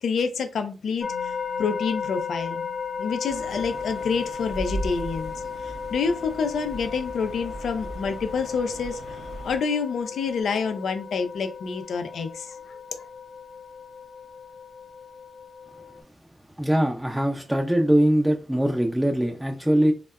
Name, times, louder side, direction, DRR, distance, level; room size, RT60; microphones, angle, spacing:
voice 1, 0.0-2.6 3.0-5.3 5.6-9.2 9.4-13.0, left 5 dB, 75° left, 0.4 m, -28 dB
sound 1, 1.0-16.0, left 6 dB, 45° left, 0.8 m, -35 dB
sound 2, 3.3-9.6, right 1 dB, 65° right, 0.7 m, -38 dB
voice 2, 16.6-19.9, right 1 dB, 5° right, 0.5 m, -22 dB
3.4 x 2.1 x 2.3 m
supercardioid pair, 40°, 0 cm